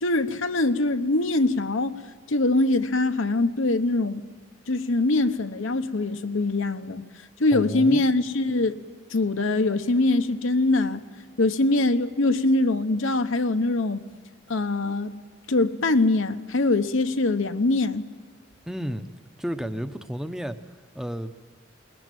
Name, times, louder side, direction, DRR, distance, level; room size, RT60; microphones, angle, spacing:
voice 1, 0.0-2.0 2.3-4.2 4.7-7.0 7.4-8.8 9.1-11.0 11.4-14.0 14.5-15.1 15.5-18.0, left 2 dB, 75° left, 1.0 m, -23 dB
voice 2, 7.5-8.1 18.7-19.1 19.4-21.3, equal, ahead, 0.8 m, -32 dB
21.5 x 19.5 x 9.1 m
head